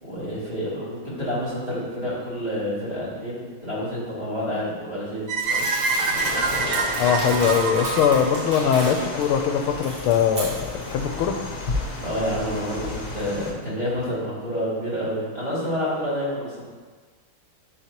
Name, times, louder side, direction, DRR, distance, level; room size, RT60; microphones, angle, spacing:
voice 1, 0.0-6.3 12.0-16.6, equal, 20° right, -9 dB, 2.3 m, -29 dB
sound 1, 5.3-9.4, right 4 dB, 75° right, 0.7 m, -26 dB
Crumpling crinkling, 5.4-9.2 9.6-10.9, right 1 dB, 55° right, 2.4 m, -34 dB
sound 2, 6.1-13.5, left 2 dB, 50° left, 1.2 m, -33 dB
voice 2, 7.0-11.3, left 7 dB, 90° left, 5 dB, 1.5 m, -21 dB
11.5 x 4.4 x 3.0 m, 1.5 s
omnidirectional pair, 2.3 m